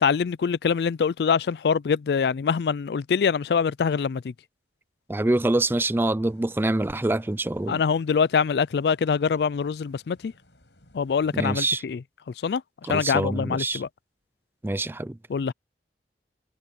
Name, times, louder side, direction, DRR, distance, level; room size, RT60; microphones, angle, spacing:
voice 1, 0.0-4.3 7.7-10.3 10.9-12.0 12.4-12.6 12.9-13.9 15.3-15.5, left 6 dB, 65° left, 0.4 m, -24 dB
voice 2, 5.1-7.8 11.3-11.8 12.9-13.8 14.6-15.2, right 2 dB, 15° right, 0.4 m, -25 dB
sound 1, 6.3-11.8, left 1 dB, 80° left, 7.9 m, -58 dB
head